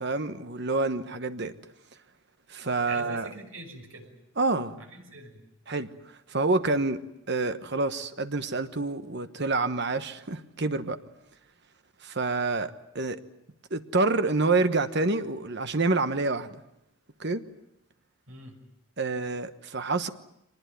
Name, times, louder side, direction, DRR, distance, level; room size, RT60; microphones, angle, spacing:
voice 1, 0.0-1.5 2.5-3.3 4.4-4.8 5.7-7.0 7.3-11.0 12.0-13.2 13.7-16.6 17.2-17.4 19.0-20.1, right 3 dB, 50° right, 1.2 m, -27 dB
voice 2, 2.8-4.1 4.8-5.4 18.3-18.6, right 2 dB, 75° right, 6.3 m, -43 dB
24.5 x 20.0 x 9.2 m
head